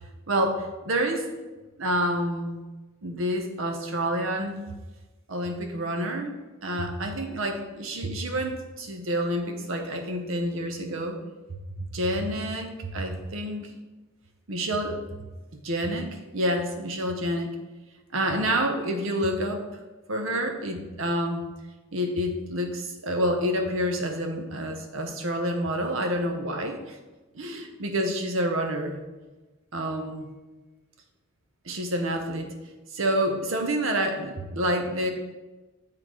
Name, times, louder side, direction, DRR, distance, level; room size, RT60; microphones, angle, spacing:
voice 1, 0.3-1.2 1.8-2.6 3.0-4.6 5.3-6.4 6.6-11.2 11.8-13.7 14.5-15.0 15.5-17.5 18.1-19.6 20.1-21.4 21.9-27.0 27.3-29.0 29.7-30.3 31.6-32.5 32.9-35.1, equal, 65° right, 4 dB, 0.8 m, -28 dB
8.6 x 3.8 x 3.1 m, 1.2 s
head